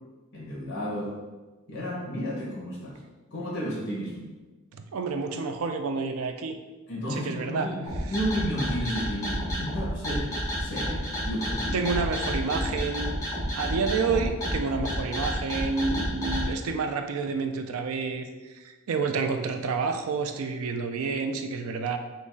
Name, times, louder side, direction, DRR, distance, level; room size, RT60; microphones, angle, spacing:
voice 1, 0.3-1.2 1.7-3.0 3.3-4.2 6.9-7.8 8.1-11.8, equal, 55° left, -4 dB, 1.3 m, -32 dB
voice 2, 4.7-6.5 7.1-7.7 11.7-13.2 13.6-22.0, right 4 dB, 85° right, 7 dB, 0.4 m, -29 dB
sound 1, 7.9-16.5, equal, 15° left, 0.9 m, -30 dB
4.0 x 3.0 x 3.7 m, 1.2 s
head